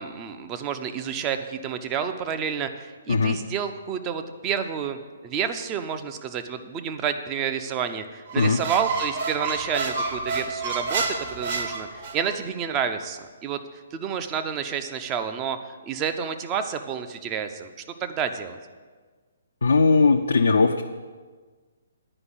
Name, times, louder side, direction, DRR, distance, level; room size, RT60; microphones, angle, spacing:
voice 1, 0.0-13.6 13.9-15.6 15.8-17.7 18.0-18.6, right 7 dB, 20° right, 7 dB, 0.6 m, -29 dB
Squeak, 8.3-12.4, right 4 dB, 45° right, 1.4 m, -29 dB
voice 2, 19.6-20.8, left 4 dB, 65° left, 4 dB, 0.5 m, -19 dB
9.8 x 5.2 x 8.0 m, 1.5 s
figure-of-eight pair, 130°, 0 cm